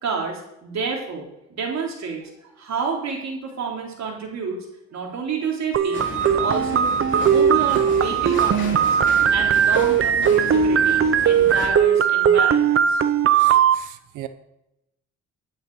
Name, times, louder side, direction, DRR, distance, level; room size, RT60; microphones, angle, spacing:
voice 1, 0.0-4.6 4.9-8.9 9.3-13.0, right 5 dB, 65° right, 0 dB, 3.5 m, -29 dB
sound 1, 5.7-13.8, right 8 dB, 45° right, 0.8 m, -18 dB
sound 2, 5.9-11.7, left 3 dB, 40° left, 2.9 m, -34 dB
voice 2, 13.3-14.3, right 14 dB, 90° right, 12 dB, 0.8 m, -38 dB
11.0 x 9.3 x 4.9 m, 0.86 s
cardioid pair, 90°, 30 cm